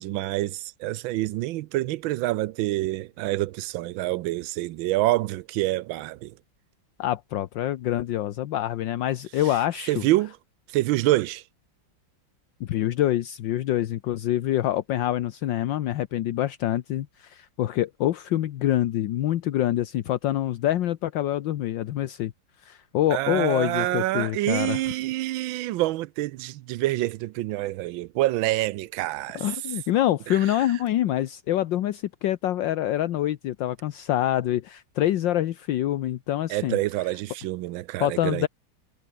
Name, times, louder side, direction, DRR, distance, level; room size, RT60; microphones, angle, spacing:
voice 1, 0.0-6.3 9.9-10.3 10.7-11.4 23.1-29.5 30.3-30.4 36.5-38.5, right 16 dB, 85° right, 1.4 m, -26 dB
voice 2, 7.0-10.1 12.6-22.3 22.6-24.8 29.3-36.8 38.0-38.5, left 13 dB, 70° left, 1.5 m, -26 dB
omnidirectional pair, 2.1 m